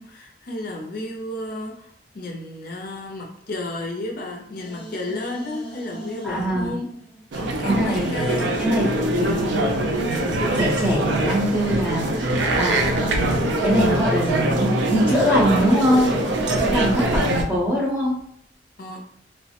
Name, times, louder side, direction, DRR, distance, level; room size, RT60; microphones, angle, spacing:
voice 1, 0.0-6.9 7.3-8.8 17.2-17.3 18.8-19.0, left 1 dB, 55° left, 1 dB, 0.5 m, -32 dB
sound 1, 4.0-7.6 8.0-17.4, right 1 dB, 30° left, 0.8 m, -38 dB
voice 2, 6.2-6.7 7.6-8.2 8.6-9.6 10.2-18.2, equal, 10° right, -8 dB, 0.6 m, -23 dB
sound 2, 7.3-17.4, right 1 dB, 85° right, 0.4 m, -23 dB
3.1 x 2.0 x 2.8 m, 0.68 s
head